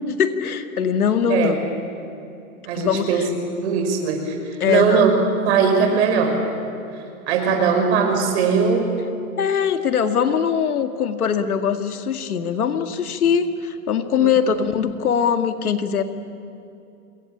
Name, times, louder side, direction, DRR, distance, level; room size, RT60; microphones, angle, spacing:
voice 1, 0.1-1.6 2.7-3.1 4.6-5.0 9.4-16.0, left 7 dB, 85° left, 8 dB, 2.1 m, -21 dB
voice 2, 2.7-5.1 5.4-6.4 7.3-8.9 14.2-14.3, right 6 dB, 50° right, 4 dB, 5.8 m, -20 dB
26.5 x 22.5 x 8.9 m, 2.7 s
hypercardioid pair, 150°, 43 cm